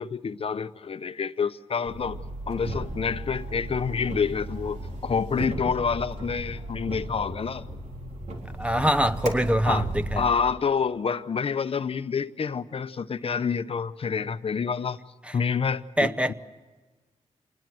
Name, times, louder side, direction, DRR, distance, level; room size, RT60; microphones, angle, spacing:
voice 1, 0.0-2.2 2.5-7.6 9.7-9.8 10.2-15.0 15.3-16.3, left 6 dB, 50° left, 0.8 m, -28 dB
sound 1, 1.8-10.3, right 1 dB, 85° right, 4.0 m, -35 dB
voice 2, 8.6-10.3 15.2-15.3 16.0-16.3, equal, 10° right, 0.8 m, -24 dB
27.0 x 20.0 x 7.8 m
cardioid pair, 85°, 12 cm